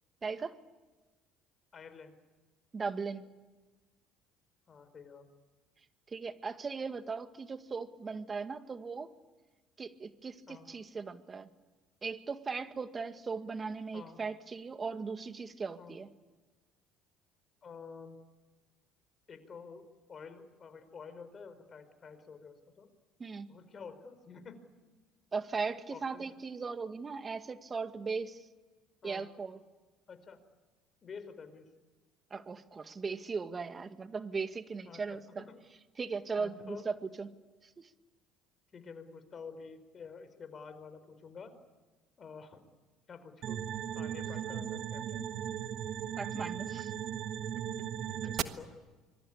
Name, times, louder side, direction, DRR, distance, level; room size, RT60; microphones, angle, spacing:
voice 1, 0.2-0.5 2.7-3.2 6.1-9.1 9.8-11.5 12.0-16.1 23.2-23.5 25.3-28.4 29.0-29.6 32.3-35.4 36.0-37.3 37.8-37.9 46.2-46.9, right 4 dB, 30° right, 10 dB, 2.0 m, -38 dB
voice 2, 1.7-2.2 4.7-5.3 10.5-10.7 13.9-14.2 15.8-16.0 17.6-18.2 19.3-22.9 23.5-24.6 25.9-26.2 29.0-29.3 30.1-30.4 31.0-31.7 34.9-35.2 35.5-35.6 36.4-36.8 38.7-41.5 42.2-42.7 43.1-43.6 43.9-45.3 48.1-48.8, left 5 dB, 40° left, 10 dB, 4.8 m, -49 dB
sound 1, 43.4-48.4, right 10 dB, 55° right, 1.4 m, -37 dB
25.5 x 23.0 x 8.6 m, 1.3 s
hypercardioid pair, 65°, 0 cm